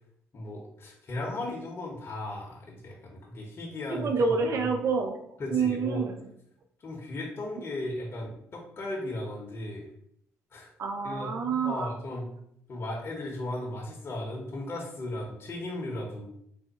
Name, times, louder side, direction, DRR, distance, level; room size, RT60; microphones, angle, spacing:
voice 1, 0.3-4.4 5.4-6.0 6.8-9.8 10.5-10.7 11.0-11.3 11.6-12.3 12.7-16.3, left 1 dB, 45° left, -2 dB, 0.9 m, -36 dB
voice 2, 3.9-5.2 5.5-6.1 10.8-11.9, right 5 dB, 60° right, 5 dB, 0.5 m, -27 dB
3.5 x 2.1 x 4.0 m, 0.71 s
supercardioid pair, 65°, 6 cm